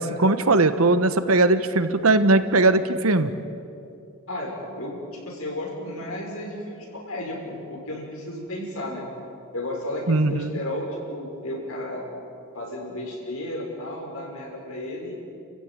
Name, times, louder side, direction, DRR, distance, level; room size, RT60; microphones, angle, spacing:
voice 1, 0.0-3.3 10.1-10.5, right 2 dB, 75° right, 11 dB, 1.2 m, -19 dB
voice 2, 4.3-9.0 9.5-12.0 12.5-15.2, left 1 dB, 75° left, -1 dB, 6.5 m, -33 dB
30.0 x 15.5 x 8.9 m, 2.6 s
head